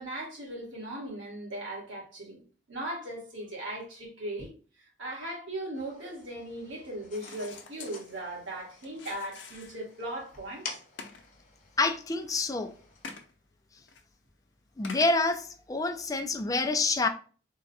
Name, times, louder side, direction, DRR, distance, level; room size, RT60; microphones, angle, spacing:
voice 1, 0.0-2.4 2.7-4.5 5.0-10.8, right 1 dB, 85° right, 1.7 m, -38 dB
sound 1, 5.7-13.1, left 4 dB, 40° left, 1.1 m, -49 dB
sound 2, 7.1-10.1 10.5-10.6 11.0-11.5 11.9-12.2 13.0-13.3 13.9-14.0 14.8-15.4 16.0-16.1, left 4 dB, 70° left, 0.7 m, -47 dB
voice 2, 11.8-12.7 14.8-17.1, left 3 dB, 20° left, 0.4 m, -27 dB
3.7 x 2.2 x 4.0 m
head